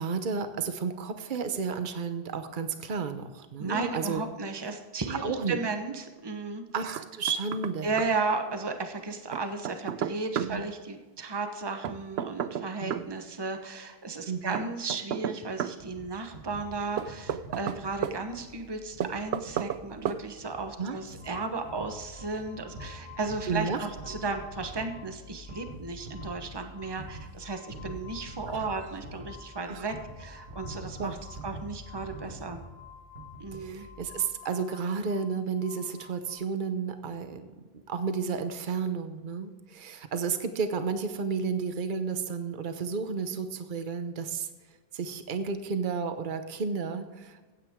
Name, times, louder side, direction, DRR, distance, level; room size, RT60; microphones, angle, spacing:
voice 1, 0.0-4.2 5.1-5.6 6.7-7.9 10.4-10.6 12.8-13.0 14.3-14.6 20.8-21.0 23.5-23.8 29.7-29.8 31.0-31.1 33.5-37.5 37.9-44.5 44.9-47.5, right 5 dB, 55° right, 9 dB, 1.0 m, -32 dB
voice 2, 3.6-6.6 7.8-31.2 31.4-32.6 33.4-33.9, right 3 dB, 25° right, 6 dB, 1.0 m, -34 dB
Knock, 7.0-7.7 8.0-8.1 9.3-10.5 11.8-13.1 14.5-15.8 17.0-18.2 19.0-19.8 20.1-20.2, right 9 dB, 90° right, 0.9 m, -32 dB
sound 1, 15.8-34.2, right 1 dB, 75° right, 1.8 m, -46 dB
sound 2, 21.1-25.1 25.4-36.3, left 8 dB, 50° left, 2.5 m, -52 dB
16.0 x 9.2 x 3.7 m, 1.3 s
omnidirectional pair, 1.0 m